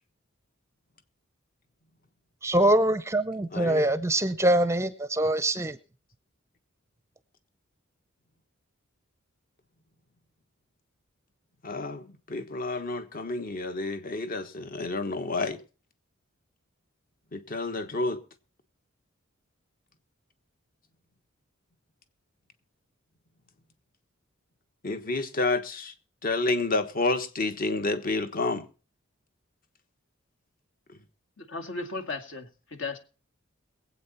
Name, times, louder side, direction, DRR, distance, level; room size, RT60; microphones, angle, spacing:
voice 1, 2.4-5.8, right 1 dB, 15° right, 0.6 m, -24 dB
voice 2, 3.5-3.9 11.6-15.6 17.3-18.2 24.8-25.9 26.2-28.6, left 2 dB, 45° left, 1.3 m, -29 dB
voice 3, 31.4-33.0, left 3 dB, 65° left, 2.1 m, -36 dB
22.5 x 8.4 x 4.2 m
head